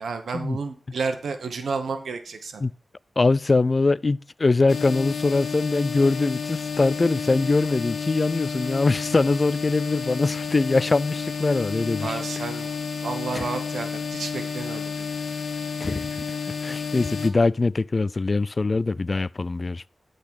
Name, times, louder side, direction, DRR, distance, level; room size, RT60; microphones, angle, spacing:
voice 1, 0.0-2.6 12.0-12.7 13.0-14.8, right 4 dB, 90° right, 1.0 m, -31 dB
voice 2, 3.2-12.2 13.3-13.5 15.8-16.2 16.6-19.9, left 3 dB, 50° left, 0.4 m, -22 dB
sound 1, 4.7-17.3, left 5 dB, 80° left, 1.4 m, -31 dB
12.0 x 4.0 x 6.3 m
cardioid pair, 50°, 0 cm